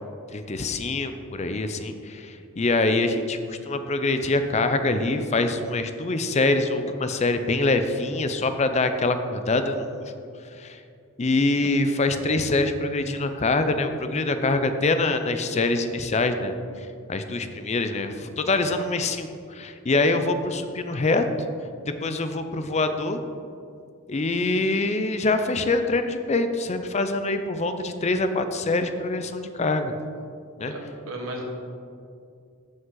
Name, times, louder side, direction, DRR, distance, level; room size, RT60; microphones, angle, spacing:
voice 1, 0.3-10.1 10.5-10.8 11.2-21.3 21.9-23.2 24.1-29.9 30.6-30.7, left 2 dB, 30° left, 8 dB, 0.5 m, -25 dB
voice 2, 30.7-31.4, right 1 dB, 90° right, 1 dB, 1.5 m, -35 dB
14.0 x 5.3 x 3.9 m, 2.4 s
head